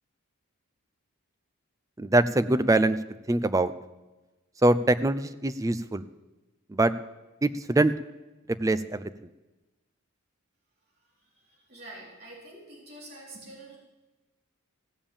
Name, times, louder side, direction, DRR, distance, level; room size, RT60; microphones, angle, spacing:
voice 1, 2.0-3.0 3.3-3.7 4.6-6.0 6.7-6.9 7.4-7.9 8.6-9.0, right 2 dB, 15° right, 13 dB, 0.4 m, -23 dB
voice 2, 11.2-13.8, right 1 dB, 45° right, -4 dB, 3.6 m, -47 dB
16.0 x 7.1 x 7.2 m, 1.1 s
head